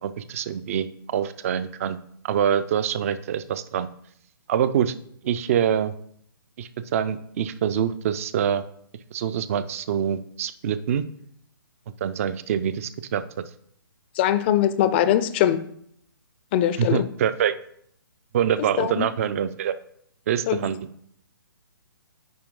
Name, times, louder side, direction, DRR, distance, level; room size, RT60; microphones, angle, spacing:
voice 1, 0.0-2.0 2.2-3.9 4.5-4.9 5.2-5.9 6.6-8.6 9.1-11.0 12.0-13.2 16.8-17.6 18.3-19.7 20.3-20.8, right 9 dB, 35° right, 14 dB, 0.5 m, -25 dB
voice 2, 14.2-15.6 16.5-17.1 18.8-19.1 20.5-20.6, left 11 dB, 30° left, 13 dB, 0.5 m, -21 dB
9.6 x 4.6 x 3.8 m, 0.67 s
figure-of-eight pair, 140°, 12 cm